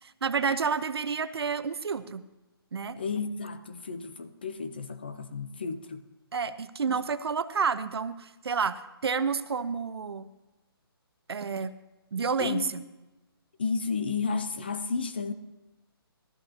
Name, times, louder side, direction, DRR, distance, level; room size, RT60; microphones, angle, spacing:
voice 1, 0.0-2.2 2.7-3.0 6.3-10.3 11.3-11.7 12.1-12.8, right 5 dB, 80° right, 13 dB, 0.7 m, -30 dB
voice 2, 3.0-6.0 6.9-7.0 12.4-12.8 13.6-15.3, left 5 dB, 25° left, 10 dB, 0.4 m, -32 dB
15.0 x 13.0 x 2.8 m, 1.1 s
hypercardioid pair, 175°, 13 cm